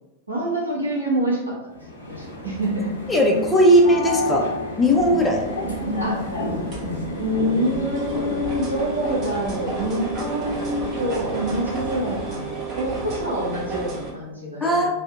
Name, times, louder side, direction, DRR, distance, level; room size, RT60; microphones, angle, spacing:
voice 1, 0.3-1.6 2.1-2.9 6.0-6.4 7.1-14.9, equal, 85° right, -4 dB, 0.8 m, -26 dB
sound 1, 1.7-12.6, left 1 dB, 75° left, 0.7 m, -31 dB
voice 2, 3.1-4.5 4.8-5.4 14.6-14.9, equal, 10° left, -1 dB, 0.5 m, -17 dB
sound 2, 5.0-14.1, right 4 dB, 35° right, 0.7 m, -33 dB
2.5 x 2.1 x 3.6 m, 0.98 s
figure-of-eight pair, 90°, 0 cm